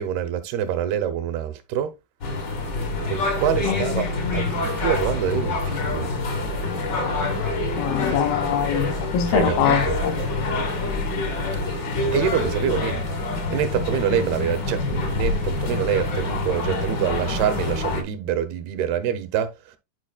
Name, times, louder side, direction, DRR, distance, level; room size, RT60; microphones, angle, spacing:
voice 1, 0.0-1.9 3.1-6.1 9.3-10.0 12.1-13.0 13.5-19.5, right 9 dB, 80° right, 2.6 m, -25 dB
sound 1, 2.2-18.0, left 3 dB, 60° left, 1.1 m, -26 dB
voice 2, 3.6-4.6 7.8-10.1, left 9 dB, 75° left, 2.3 m, -24 dB
11.0 x 4.6 x 2.3 m
omnidirectional pair, 4.6 m